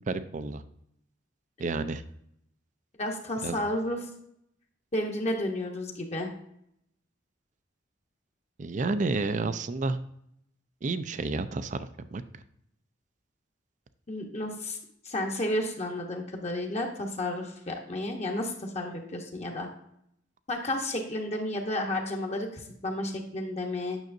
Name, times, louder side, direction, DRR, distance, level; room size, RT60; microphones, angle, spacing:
voice 1, 0.1-0.6 1.6-2.0 3.4-3.6 8.6-10.0 10.8-12.2, right 3 dB, 40° right, 12 dB, 0.4 m, -30 dB
voice 2, 3.0-4.0 4.9-6.3 14.1-14.8 15.0-19.7 20.5-22.5 22.8-24.0, left 1 dB, 35° left, 2 dB, 1.0 m, -32 dB
9.1 x 6.3 x 2.6 m, 0.73 s
head